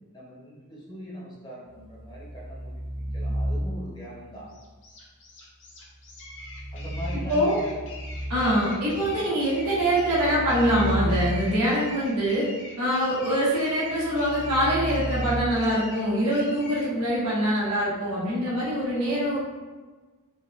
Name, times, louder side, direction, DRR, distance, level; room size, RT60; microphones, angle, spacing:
voice 1, 0.1-4.5 6.7-7.8, right 1 dB, 20° left, -5 dB, 0.7 m, -40 dB
sound 1, 1.7-4.0 6.1-8.7 9.4-11.9 13.9-15.4, equal, 55° right, 0.6 m, -32 dB
sound 2, 4.5-16.9, left 2 dB, 55° left, 0.6 m, -44 dB
voice 2, 8.3-12.5 12.8-19.4, equal, 85° right, -8 dB, 1.2 m, -24 dB
3.9 x 2.2 x 2.4 m, 1.3 s
head